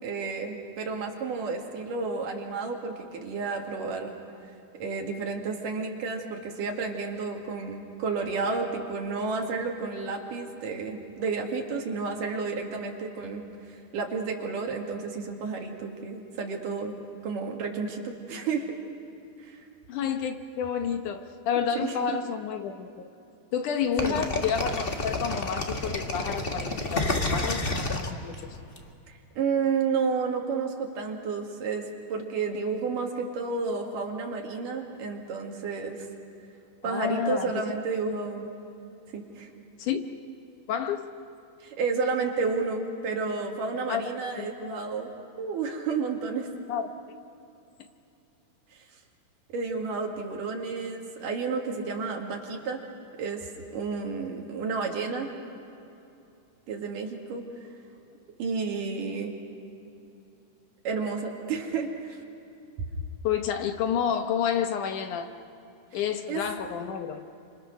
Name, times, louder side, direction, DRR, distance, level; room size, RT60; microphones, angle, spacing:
voice 1, 0.0-4.1 4.8-16.9 17.2-18.8 19.4-19.7 21.8-22.2 24.0-24.3 29.1-36.1 36.8-38.5 39.1-39.5 41.6-45.1 45.4-46.5 48.7-48.9 49.5-52.8 53.2-55.3 56.7-57.4 58.4-59.3 60.9-62.2 66.3-66.4, right 4 dB, 65° right, 3.7 m, -31 dB
voice 2, 19.9-23.1 23.5-28.6 36.8-37.7 38.1-38.2 39.8-40.1 40.7-41.1 43.9-44.0 44.4-44.8 46.7-46.9 63.2-65.3 65.9-67.2, left 8 dB, 70° left, 2.3 m, -30 dB
sound 1, 24.0-28.8, left 2 dB, 55° left, 0.6 m, -29 dB
29.0 x 26.5 x 6.4 m
omnidirectional pair, 4.1 m